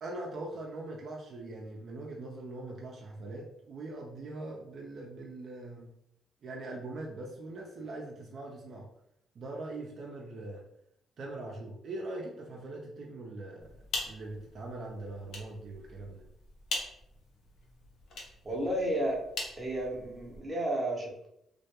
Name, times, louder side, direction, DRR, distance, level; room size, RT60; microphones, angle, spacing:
voice 1, 0.0-5.9 6.4-8.9 9.3-10.6 11.2-13.7 14.0-16.2, right 2 dB, 60° right, -1 dB, 0.4 m, -42 dB
sound 1, 13.6-20.4, left 2 dB, 70° left, 0.6 m, -42 dB
voice 2, 18.4-19.2 19.6-21.3, right 1 dB, 25° right, -2 dB, 0.7 m, -32 dB
2.2 x 2.1 x 2.8 m, 0.77 s
cardioid pair, 90°, 0 cm